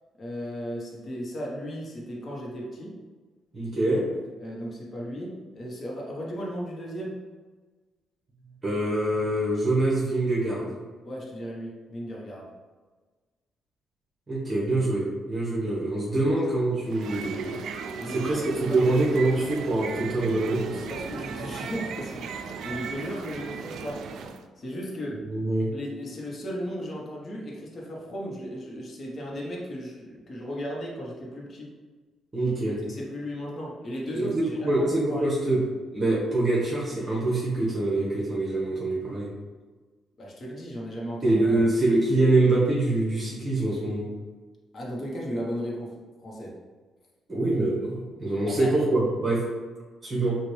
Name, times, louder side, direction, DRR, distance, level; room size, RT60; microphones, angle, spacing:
voice 1, 0.2-3.0 4.4-7.2 11.0-12.5 16.2-16.3 18.0-18.4 18.7-18.9 20.9-24.1 24.6-25.2 25.7-31.7 32.4-35.3 40.2-41.6 44.7-46.5 48.5-48.7, equal, 45° left, -3 dB, 1.1 m, -36 dB
voice 2, 3.5-4.0 8.6-10.7 14.3-17.6 18.1-20.8 25.2-25.7 32.3-32.7 34.1-35.6 35.9-39.3 41.2-44.0 47.3-49.4 50.0-50.4, right 2 dB, 35° right, -6 dB, 1.4 m, -25 dB
sound 1, 16.8-24.5, right 5 dB, 70° right, 0.3 m, -36 dB
6.0 x 2.5 x 3.3 m, 1.4 s
cardioid pair, 90°, 0 cm